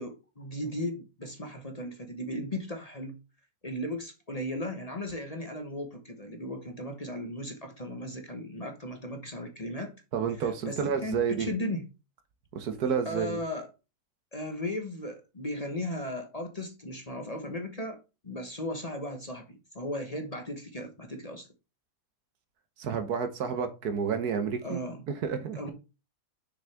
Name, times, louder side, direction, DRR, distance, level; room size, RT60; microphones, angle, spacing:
voice 1, 0.0-3.2 3.6-9.9 10.4-11.9 13.0-13.7 14.3-21.5 24.6-25.0 25.5-25.7, left 1 dB, 25° left, 1.1 m, -36 dB
voice 2, 10.1-11.5 12.5-13.4 22.8-24.8 25.2-25.7, right 7 dB, 80° right, 1.6 m, -30 dB
6.4 x 6.2 x 3.4 m
omnidirectional pair, 1.6 m